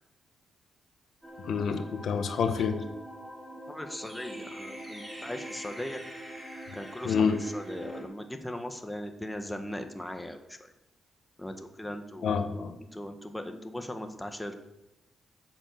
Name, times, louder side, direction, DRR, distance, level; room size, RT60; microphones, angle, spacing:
sound 1, 1.2-8.0, right 1 dB, 10° right, 5.7 m, -43 dB
voice 1, 1.4-2.8 7.0-7.4 12.2-12.7, left 6 dB, 70° left, 7 dB, 1.3 m, -27 dB
voice 2, 3.7-6.0 6.7-10.6 11.4-12.6 12.9-14.5, left 1 dB, 10° left, 5 dB, 1.6 m, -39 dB
12.0 x 7.7 x 7.9 m, 0.93 s
cardioid pair, 95°, 0 cm